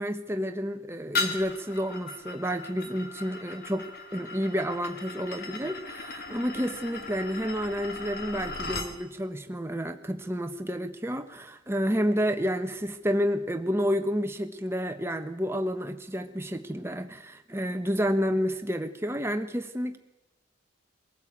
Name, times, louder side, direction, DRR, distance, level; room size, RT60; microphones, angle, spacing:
voice 1, 0.0-3.9 4.1-20.0, equal, 15° right, 7 dB, 1.2 m, -30 dB
sound 1, 1.1-8.9, left 3 dB, 50° left, 2.3 m, -37 dB
22.5 x 14.0 x 8.8 m, 0.96 s
head